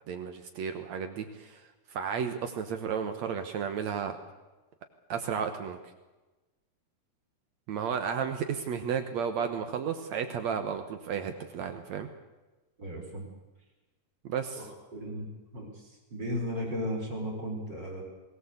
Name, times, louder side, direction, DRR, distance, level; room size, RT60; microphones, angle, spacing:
voice 1, 0.1-4.2 5.1-5.8 7.7-12.1 14.2-14.7, right 7 dB, 75° right, 7 dB, 1.6 m, -33 dB
voice 2, 12.8-13.3 14.6-14.7 14.9-15.3 15.5-15.7 16.1-18.0, equal, 25° right, 1 dB, 5.0 m, -35 dB
21.5 x 18.0 x 8.1 m, 1.1 s
omnidirectional pair, 4.9 m